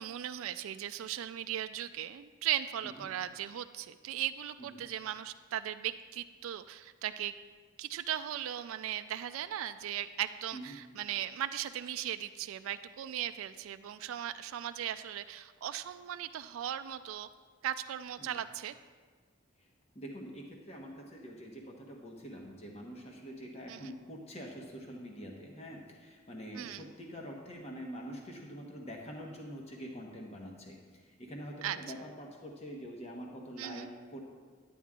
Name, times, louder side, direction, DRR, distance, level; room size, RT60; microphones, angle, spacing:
voice 1, 0.0-7.3 7.8-17.3 17.6-18.7 23.7-23.9 26.5-26.9 31.6-31.8 33.6-33.9, right 11 dB, 85° right, 11 dB, 0.3 m, -38 dB
voice 2, 19.9-34.2, equal, 30° left, 0 dB, 1.1 m, -45 dB
11.0 x 9.2 x 3.7 m, 1.5 s
head